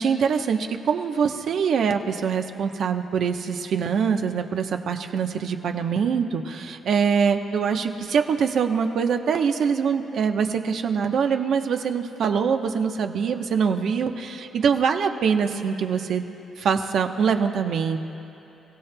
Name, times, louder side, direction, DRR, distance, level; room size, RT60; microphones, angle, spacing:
voice 1, 0.0-18.0, right 6 dB, 65° right, 5 dB, 0.9 m, -24 dB
29.0 x 16.0 x 2.3 m, 2.9 s
cardioid pair, 90°, 0 cm